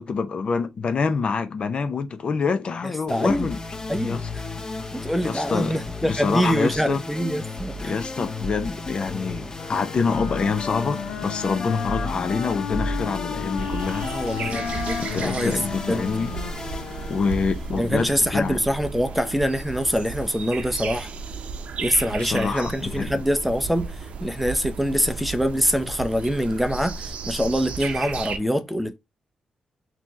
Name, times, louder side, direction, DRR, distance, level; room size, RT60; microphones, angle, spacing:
voice 1, 0.0-3.6 4.0-4.3 5.2-7.0 7.8-14.1 15.0-16.3 17.1-18.6 22.2-23.2, left 5 dB, 50° left, 0.7 m, -26 dB
voice 2, 2.8-3.5 3.9-4.4 4.9-8.0 14.0-15.5 15.9-16.1 17.8-21.1 21.8-24.0 24.2-29.0, equal, ahead, 0.6 m, -25 dB
sound 1, 3.1-18.5, left 2 dB, 35° left, 1.6 m, -34 dB
Wind instrument woodwind instrument, 9.5-17.6, left 7 dB, 90° left, 0.9 m, -34 dB
sound 2, 13.6-28.4, right 4 dB, 65° right, 0.7 m, -34 dB
4.2 x 2.9 x 2.9 m
cardioid pair, 90°, 2 cm